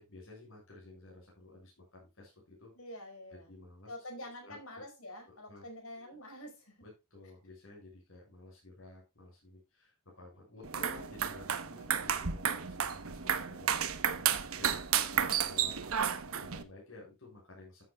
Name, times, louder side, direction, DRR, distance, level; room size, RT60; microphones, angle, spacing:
voice 1, 0.0-2.7 3.3-3.9 4.4-4.6 5.3-5.6 6.0-6.2 6.8-17.8, left 2 dB, 65° left, 6.7 m, -53 dB
voice 2, 2.7-3.5 3.9-6.8, left 1 dB, 85° left, 5.0 m, -47 dB
sound 1, 10.6-16.6, right 8 dB, 85° right, 1.1 m, -32 dB
14.0 x 8.1 x 2.4 m
head